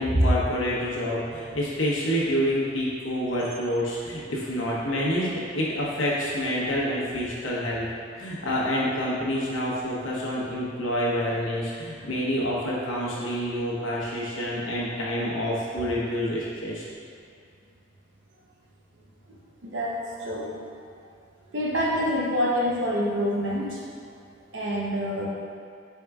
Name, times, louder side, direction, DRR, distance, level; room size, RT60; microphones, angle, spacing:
voice 1, 0.0-7.8 8.2-16.9, equal, 85° left, -5 dB, 1.0 m, -27 dB
voice 2, 19.6-20.5 21.5-23.8 24.5-25.3, equal, 70° right, -3 dB, 0.8 m, -26 dB
4.6 x 4.5 x 2.3 m, 2.3 s
head